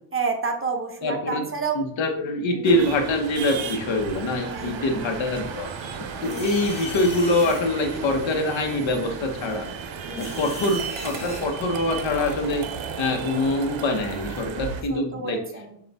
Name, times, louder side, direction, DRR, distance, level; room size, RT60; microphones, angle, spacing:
voice 1, 0.1-1.8 2.5-2.8 4.5-4.9 6.2-6.5 10.0-10.5 14.9-15.8, right 4 dB, 30° right, 3 dB, 0.7 m, -30 dB
voice 2, 1.0-1.5 1.7-5.7 6.2-9.7 10.2-12.7 13.0-15.4, left 2 dB, 75° left, 4 dB, 0.9 m, -24 dB
sound 1, 2.6-14.8, right 6 dB, 75° right, 0.7 m, -34 dB
sound 2, 5.7-12.9, left 1 dB, 15° left, 1.4 m, -40 dB
6.5 x 2.4 x 3.4 m, 0.70 s
cardioid pair, 100°, 46 cm